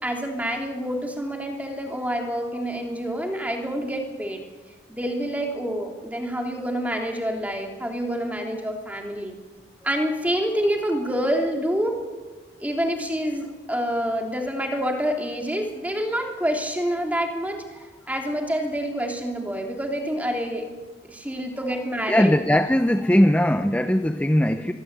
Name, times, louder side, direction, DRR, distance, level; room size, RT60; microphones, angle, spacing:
voice 1, 0.0-4.4 4.9-9.3 9.8-12.0 12.6-17.6 18.1-20.7 21.1-22.3, equal, 10° right, 2 dB, 3.1 m, -27 dB
voice 2, 22.1-24.7, equal, 10° left, 8 dB, 0.7 m, -19 dB
25.0 x 23.0 x 8.2 m, 1.4 s
head